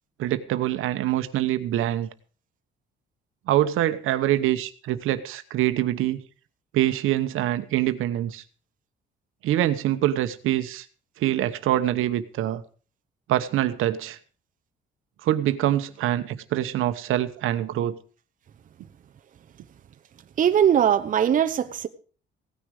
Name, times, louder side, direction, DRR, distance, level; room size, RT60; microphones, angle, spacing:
voice 1, 0.2-2.1 3.5-6.2 6.7-8.4 9.4-10.8 11.2-12.6 13.3-14.2 15.2-18.0, right 13 dB, 80° right, 10 dB, 1.1 m, -24 dB
voice 2, 20.4-21.9, right 9 dB, 40° right, 8 dB, 0.9 m, -20 dB
16.5 x 10.0 x 4.8 m, 0.39 s
cardioid pair, 155°, 21 cm